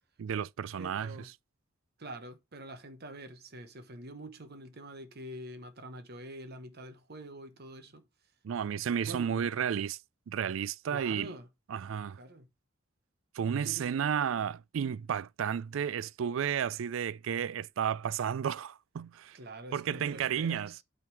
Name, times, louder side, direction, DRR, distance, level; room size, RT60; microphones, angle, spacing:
voice 1, 0.2-1.1 8.4-10.0 10.3-11.3 11.7-12.2 13.3-19.4 19.7-20.7, right 8 dB, 70° right, 0.4 m, -32 dB
voice 2, 0.7-1.3 2.0-8.0 9.0-9.5 10.9-11.5 12.2-12.5 13.6-14.0 19.3-20.8, right 1 dB, 50° right, 1.0 m, -46 dB
8.8 x 3.8 x 4.6 m
head